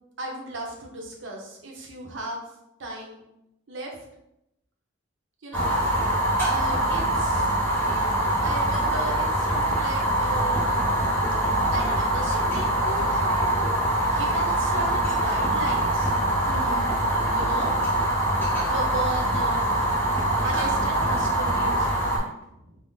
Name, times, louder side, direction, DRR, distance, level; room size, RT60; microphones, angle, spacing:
voice 1, 0.2-2.4 2.8-3.2 3.7-4.0 5.4-5.7 6.4-7.6 8.4-10.8 11.3-11.4 11.7-13.5 14.0-16.1 16.5-16.9 17.3-17.7 18.5-19.7 20.4-22.8, right 2 dB, 65° right, 0 dB, 0.6 m, -35 dB
Fire, 5.5-22.2, right 1 dB, 10° left, 0.7 m, -24 dB
2.6 x 2.0 x 3.5 m, 0.85 s
head